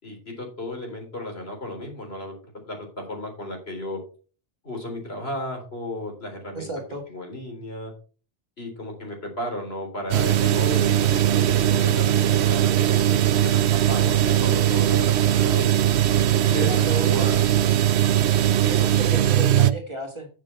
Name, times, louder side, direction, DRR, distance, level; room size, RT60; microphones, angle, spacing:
voice 1, 0.0-2.3 2.6-4.0 4.6-6.7 7.1-7.9 8.6-15.7 16.4-17.4 19.1-19.2, left 1 dB, 60° left, 1 dB, 4.0 m, -34 dB
voice 2, 6.5-7.0 16.5-17.3 18.6-20.4, right 2 dB, 25° right, 3 dB, 1.7 m, -33 dB
sound 1, 10.1-19.7, right 11 dB, 75° right, 0.9 m, -20 dB
10.5 x 7.5 x 4.5 m, 0.38 s
omnidirectional pair, 1.2 m